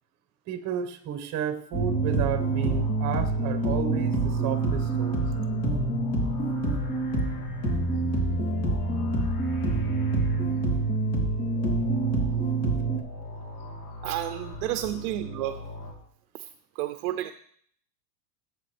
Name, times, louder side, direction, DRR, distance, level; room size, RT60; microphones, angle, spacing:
voice 1, 0.5-5.2, right 8 dB, 35° right, 7 dB, 1.3 m, -32 dB
sound 1, 1.7-13.0, right 2 dB, 30° left, 2.9 m, -26 dB
sound 2, 1.8-15.9, left 1 dB, 60° left, 3.7 m, -40 dB
voice 2, 14.0-15.7 16.3-17.3, right 14 dB, 65° right, 9 dB, 0.7 m, -31 dB
16.5 x 8.3 x 3.4 m, 0.62 s
supercardioid pair, 145°, 49 cm